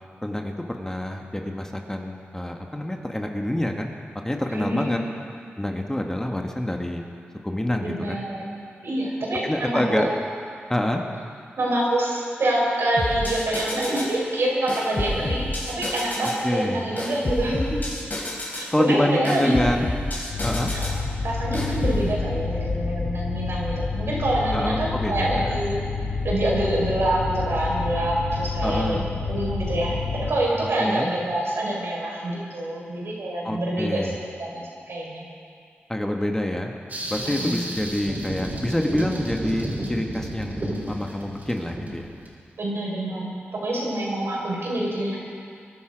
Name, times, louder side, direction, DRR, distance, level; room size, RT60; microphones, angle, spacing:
voice 1, 0.2-3.9 4.2-5.0 5.6-7.0 7.4-8.2 9.4-10.1 10.7-11.0 16.2-16.8 18.7-19.9 20.4-20.7 24.5-25.6 28.6-29.1 30.8-31.1 33.4-34.2 35.9-36.7 37.1-40.6 40.9-42.1, left 1 dB, 10° left, 2 dB, 1.4 m, -27 dB
voice 2, 4.5-5.0 7.8-8.6 8.8-10.0 11.6-17.8 18.5-19.5 20.7-20.9 21.2-25.8 26.2-34.1 34.4-35.2 37.2-37.6 42.6-45.2, right 1 dB, 70° right, -3 dB, 4.9 m, -26 dB
sound 1, 13.0-14.2 14.7-16.4 17.0-18.7 19.2-21.0 21.5-22.0, left 2 dB, 40° left, 4.4 m, -29 dB
sound 2, 20.3-30.3, left 4 dB, 65° left, 1.7 m, -29 dB
sound 3, 36.9-42.3, right 1 dB, 40° right, 4.3 m, -31 dB
22.0 x 11.5 x 5.1 m, 2.3 s
cardioid pair, 65°, 4 cm